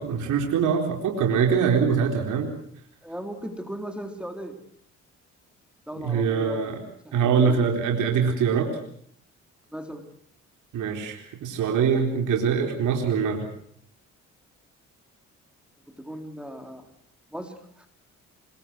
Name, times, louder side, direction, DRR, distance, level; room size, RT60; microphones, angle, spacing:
voice 1, 0.0-2.5 5.9-6.8 7.1-8.8 10.7-13.5, right 6 dB, 80° right, 3 dB, 4.1 m, -23 dB
voice 2, 3.0-4.6 5.9-7.7 9.7-10.0 15.9-16.9 17.3-17.9, equal, 5° right, 5 dB, 3.9 m, -37 dB
26.0 x 23.5 x 6.2 m, 0.63 s
cardioid pair, 90°, 30 cm